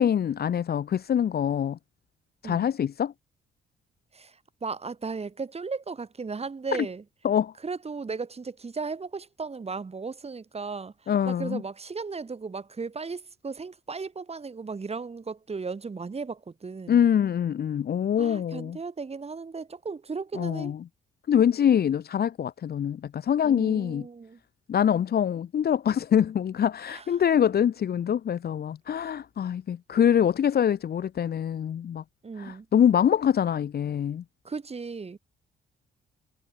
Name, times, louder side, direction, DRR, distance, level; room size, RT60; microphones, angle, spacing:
voice 1, 0.0-1.8 2.4-3.1 7.2-7.5 11.1-11.6 16.9-18.8 20.3-20.8 21.3-24.1 24.7-32.0 32.4-34.2, left 9 dB, 55° left, 1.2 m, -24 dB
voice 2, 4.1-7.0 7.6-17.0 18.2-20.7 23.4-24.4 26.9-27.0 32.2-32.7 34.4-35.2, right 4 dB, 30° right, 5.6 m, -36 dB
cardioid pair, 90°, 20 cm